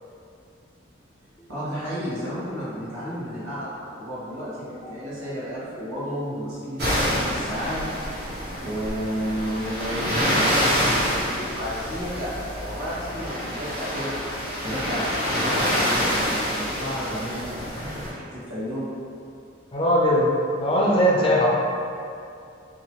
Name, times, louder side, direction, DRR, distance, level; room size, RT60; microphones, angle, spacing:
voice 1, 1.5-7.8 8.6-14.2 14.6-18.9, equal, 90° right, -10 dB, 1.1 m, -32 dB
sound 1, 6.8-18.1, equal, 55° right, 0.9 m, -26 dB
voice 2, 19.7-20.3 20.6-21.5, equal, 25° left, -4 dB, 0.4 m, -20 dB
2.7 x 2.3 x 2.9 m, 2.5 s
head